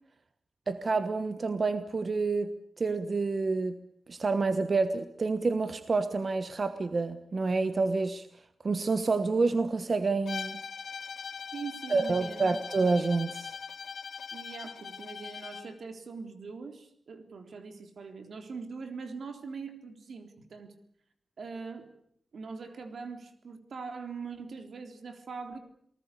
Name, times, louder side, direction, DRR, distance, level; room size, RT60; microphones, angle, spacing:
voice 1, 0.7-3.8 4.1-8.3 8.6-10.6 11.9-13.6, right 3 dB, 45° right, 11 dB, 1.2 m, -28 dB
Bowed string instrument, 10.3-15.7, left 6 dB, 90° left, 3.0 m, -41 dB
voice 2, 11.5-12.5 14.3-20.7 21.4-22.0 22.3-25.6, right 5 dB, 80° right, 7 dB, 3.7 m, -42 dB
29.0 x 19.5 x 8.4 m, 0.65 s
wide cardioid pair, 160°, 0 cm